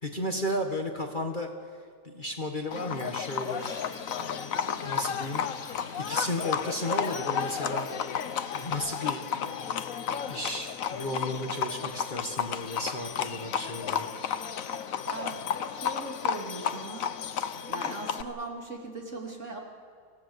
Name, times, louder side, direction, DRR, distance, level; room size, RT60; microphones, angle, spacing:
voice 1, 0.0-1.5 2.0-3.6 4.2-5.4 6.0-7.9 8.5-9.7 10.3-14.1, left 1 dB, 30° left, 3 dB, 1.6 m, -34 dB
Livestock farm animals working animals, 2.7-18.2, left 8 dB, 60° left, 1.2 m, -32 dB
sound 1, 3.3-8.7, equal, ahead, 5.6 m, -49 dB
voice 2, 15.0-15.4 15.7-17.1 17.7-19.6, right 2 dB, 45° right, 0 dB, 3.2 m, -39 dB
26.5 x 17.5 x 8.1 m, 2.1 s
omnidirectional pair, 1.7 m